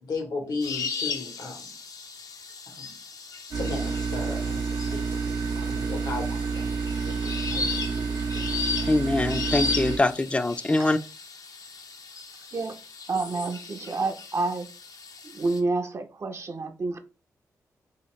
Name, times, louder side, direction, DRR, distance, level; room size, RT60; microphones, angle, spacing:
voice 1, 0.0-1.7 2.7-2.9 3.5-5.2 5.5-7.2 7.4-7.8, left 3 dB, 80° left, 1.2 m, -35 dB
sound 1, 0.6-15.6, left 4 dB, 65° left, 0.5 m, -36 dB
sound 2, 3.5-10.0, right 5 dB, 90° right, 0.6 m, -29 dB
voice 2, 8.8-11.0, left 2 dB, 15° left, 0.3 m, -23 dB
voice 3, 13.1-14.7 15.2-17.0, right 3 dB, 45° right, 0.5 m, -29 dB
3.3 x 2.8 x 3.1 m
cardioid pair, 70°, 7 cm